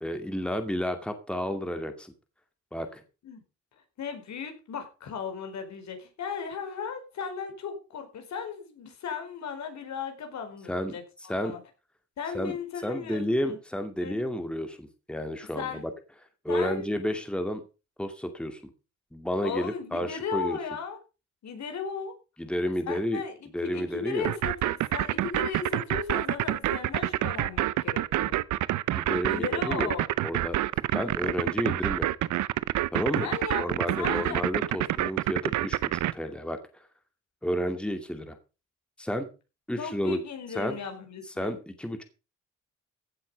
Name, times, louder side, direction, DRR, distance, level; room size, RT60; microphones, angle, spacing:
voice 1, 0.0-2.1 2.7-3.0 10.7-10.9 11.3-11.5 12.3-12.6 12.8-15.9 16.4-17.6 18.0-18.6 19.1-20.6 22.4-23.2 23.5-24.3 28.9-29.9 30.2-30.6 30.9-32.1 32.9-33.3 33.6-36.6 37.4-38.4 39.0-39.3 39.7-40.2 40.5-40.8 41.4-42.0, equal, 5° left, 7 dB, 2.3 m, -31 dB
voice 2, 4.0-11.6 12.2-13.6 14.0-14.3 15.6-15.8 16.5-16.9 19.4-21.0 21.4-22.1 22.9-28.4 29.3-30.1 33.2-33.6 34.0-34.4 39.8-41.6, left 6 dB, 65° left, 6 dB, 4.6 m, -36 dB
sound 1, 24.2-36.1, right 15 dB, 75° right, 0.8 m, -27 dB
16.0 x 7.8 x 5.3 m, 0.32 s
cardioid pair, 90°, 30 cm